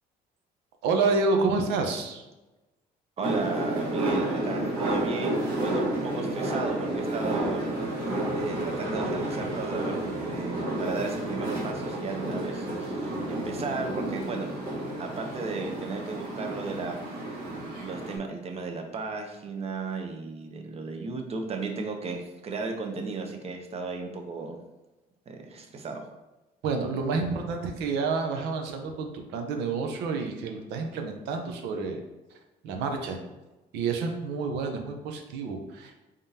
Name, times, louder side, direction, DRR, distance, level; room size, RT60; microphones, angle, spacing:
voice 1, 0.8-2.2 26.6-32.0 32.6-33.2 33.7-36.0, right 4 dB, 90° right, 4 dB, 0.7 m, -29 dB
voice 2, 3.2-7.6 8.4-14.6 15.0-17.0 17.8-24.6 25.3-26.1, right 4 dB, 35° right, 3 dB, 0.7 m, -35 dB
sound 1, 3.2-18.2, right 1 dB, 60° right, 1.4 m, -31 dB
3.6 x 3.6 x 2.8 m, 1.0 s
cardioid pair, 110°, 17 cm